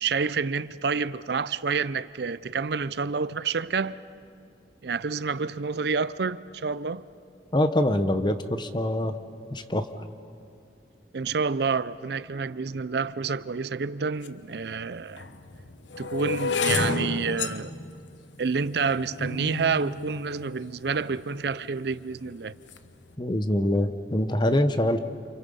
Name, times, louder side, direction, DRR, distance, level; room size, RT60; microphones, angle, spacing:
voice 1, 0.0-4.0 4.8-7.0 11.1-15.3 16.0-17.7 18.4-22.5, right 5 dB, 65° right, 0.5 m, -28 dB
voice 2, 7.5-9.1 9.5-9.9 23.2-25.0, left 1 dB, 25° left, 0.9 m, -24 dB
sound 1, 14.2-14.3 15.1-21.2 21.9-22.3 22.5-22.9, left 3 dB, 85° left, 1.1 m, -31 dB
29.5 x 28.5 x 5.5 m
head